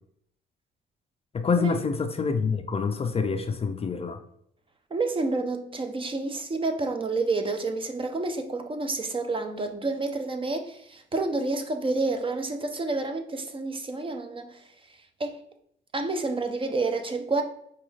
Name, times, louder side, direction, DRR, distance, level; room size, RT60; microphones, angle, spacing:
voice 1, 1.3-4.2, left 5 dB, 30° left, 0.4 m, -26 dB
voice 2, 4.9-14.6 15.2-15.4 15.9-17.4, right 3 dB, 25° right, 0.5 m, -29 dB
5.0 x 2.3 x 3.2 m
cardioid pair, 90°, 20 cm